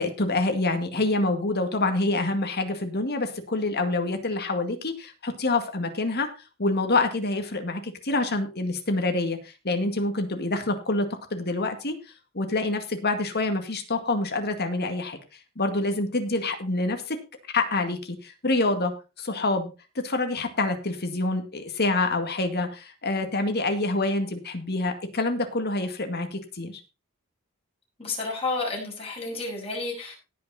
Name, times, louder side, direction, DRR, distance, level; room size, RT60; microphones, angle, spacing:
voice 1, 0.0-6.3 6.6-9.4 9.6-11.1 11.3-11.9 12.3-15.2 15.6-17.2 17.5-18.9 19.2-19.7 20.0-26.8, left 2 dB, 45° left, 7 dB, 2.1 m, -26 dB
voice 2, 28.0-30.1, left 3 dB, 25° left, -1 dB, 6.2 m, -31 dB
18.0 x 6.1 x 4.2 m, 0.30 s
head